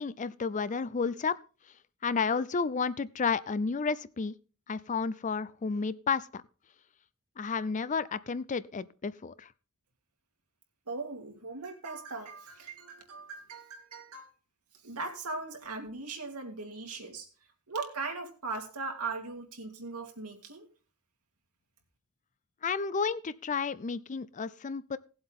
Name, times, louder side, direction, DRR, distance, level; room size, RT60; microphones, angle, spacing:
voice 1, 0.0-1.4 2.0-4.3 4.7-6.4 7.4-9.5 22.6-25.0, left 5 dB, 35° left, 17 dB, 0.5 m, -31 dB
voice 2, 10.9-14.3 14.8-17.3 17.7-20.7, right 3 dB, 75° right, 3 dB, 2.8 m, -39 dB
18.0 x 7.9 x 3.7 m, 0.36 s
head